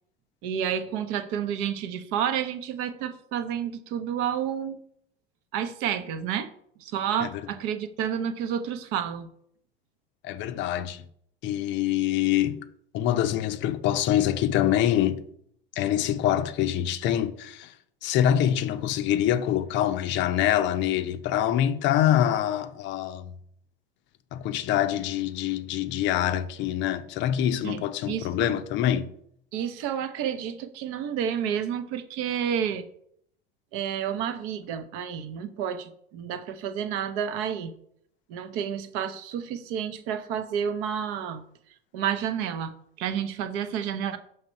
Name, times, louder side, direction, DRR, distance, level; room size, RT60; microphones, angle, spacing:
voice 1, 0.4-4.8 5.5-6.5 6.8-9.3 27.6-28.5 29.5-32.9 33.7-37.7 38.3-41.4 41.9-42.7 43.0-44.2, right 8 dB, 50° right, 0.7 m, -30 dB
voice 2, 10.2-11.0 11.4-12.6 12.9-15.2 15.8-17.7 18.0-23.3 24.3-29.1, left 11 dB, 40° left, 0.6 m, -25 dB
5.8 x 3.3 x 5.4 m
figure-of-eight pair, 75°, 29 cm